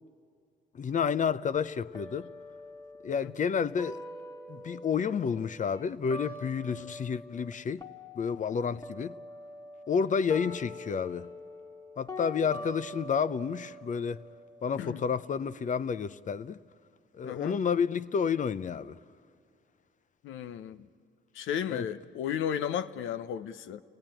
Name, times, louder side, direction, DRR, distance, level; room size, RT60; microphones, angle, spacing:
voice 1, 0.7-2.3 3.0-4.0 4.5-7.8 8.1-9.1 9.9-11.3 12.0-14.2 14.6-16.6 17.1-19.0 21.7-21.8, left 6 dB, 40° left, 0.6 m, -30 dB
sound 1, 1.6-7.5 7.8-15.6, left 1 dB, 20° left, 1.6 m, -45 dB
voice 2, 17.2-17.6 20.2-20.9 21.3-23.8, left 9 dB, 80° left, 0.8 m, -34 dB
29.5 x 18.5 x 8.9 m
cardioid pair, 90°, 20 cm